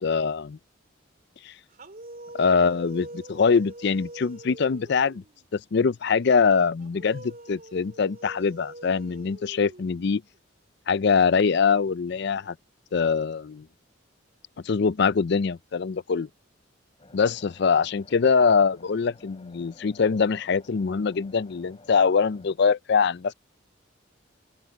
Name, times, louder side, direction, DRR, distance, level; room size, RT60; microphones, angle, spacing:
voice 1, 0.0-0.6 1.4-1.5 2.3-5.2 5.5-10.2 10.9-12.5 12.9-13.7 14.6-16.3 17.1-23.3, left 5 dB, 55° left, 0.4 m, -23 dB
sound 1, 1.7-5.5 6.8-10.4, right 1 dB, 45° right, 2.8 m, -44 dB
sound 2, 17.0-22.5, left 2 dB, 30° left, 7.6 m, -53 dB
open air
head